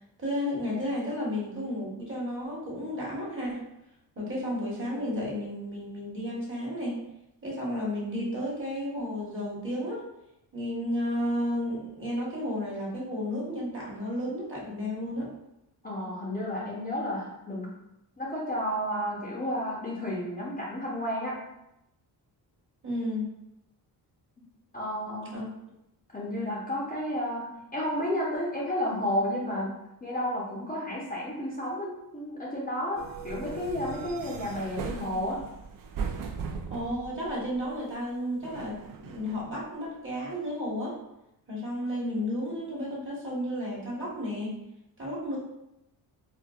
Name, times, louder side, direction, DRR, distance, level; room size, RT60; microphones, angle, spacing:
voice 1, 0.2-3.6 4.2-7.0 7.4-10.0 10.5-15.3 22.8-23.3 25.3-25.4 36.7-41.0 41.5-44.5 45.0-45.4, left 1 dB, 30° right, -5 dB, 1.2 m, -32 dB
voice 2, 15.8-17.7 18.2-21.4 24.7-25.4 26.1-29.7 30.0-35.4, left 1 dB, 20° left, -5 dB, 0.7 m, -32 dB
sound 1, 32.9-37.8 38.4-39.5, right 6 dB, 50° right, 0.5 m, -39 dB
4.3 x 2.2 x 2.3 m, 0.85 s
cardioid pair, 115°, 43 cm